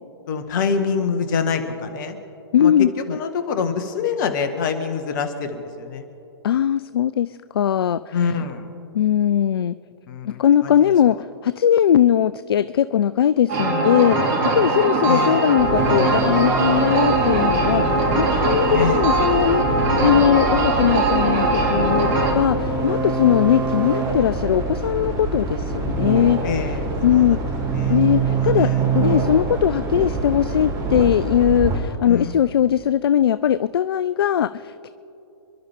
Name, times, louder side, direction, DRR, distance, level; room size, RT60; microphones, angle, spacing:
voice 1, 0.3-2.2 2.6-6.0 8.1-8.6 10.1-10.9 15.0-15.4 18.7-19.1 26.4-27.4 27.7-28.0 28.3-28.9 32.0-32.4, left 6 dB, 50° left, 8 dB, 1.7 m, -26 dB
voice 2, 2.5-3.2 6.4-8.2 8.9-9.7 10.3-11.2 11.4-26.5 27.0-27.4 27.9-34.9, left 10 dB, 70° left, 15 dB, 0.4 m, -20 dB
sound 1, 13.5-22.3, right 2 dB, 45° right, 2.8 m, -21 dB
sound 2, 15.6-31.8, right 4 dB, 25° right, 2.8 m, -25 dB
28.5 x 12.0 x 3.6 m, 2.9 s
figure-of-eight pair, 115°, 13 cm